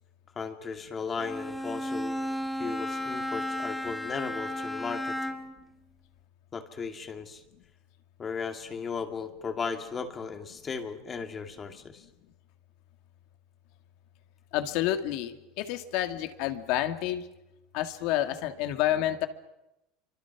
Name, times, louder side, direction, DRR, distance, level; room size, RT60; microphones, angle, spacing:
voice 1, 0.4-2.2 2.6-5.2 6.5-7.4 8.2-12.0, left 5 dB, 20° left, 6 dB, 2.3 m, -36 dB
Bowed string instrument, 1.2-5.6, left 1 dB, 5° left, 1.7 m, -34 dB
voice 2, 14.5-17.3 17.7-19.3, left 12 dB, 60° left, 8 dB, 2.2 m, -29 dB
29.5 x 25.0 x 6.1 m, 0.91 s
supercardioid pair, 150°, 0 cm